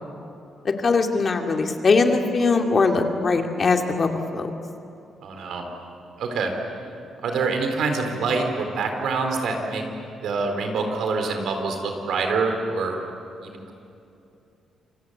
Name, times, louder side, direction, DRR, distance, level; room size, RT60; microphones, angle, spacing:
voice 1, 0.6-4.5, left 4 dB, 35° left, 4 dB, 2.3 m, -21 dB
voice 2, 5.2-5.6 6.2-6.5 7.2-9.8 10.2-13.0 13.4-13.7, right 4 dB, 75° right, 4 dB, 4.3 m, -25 dB
28.0 x 24.0 x 8.4 m, 2.7 s
cardioid pair, 130°, 0 cm